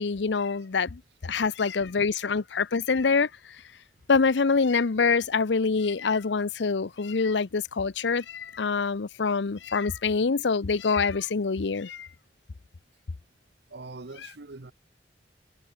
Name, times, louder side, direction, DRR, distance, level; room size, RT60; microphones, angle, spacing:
voice 1, 0.0-3.3 4.1-12.1, left 4 dB, 80° left, 0.7 m, -25 dB
voice 2, 13.7-14.7, right 3 dB, 65° right, 1.1 m, -42 dB
head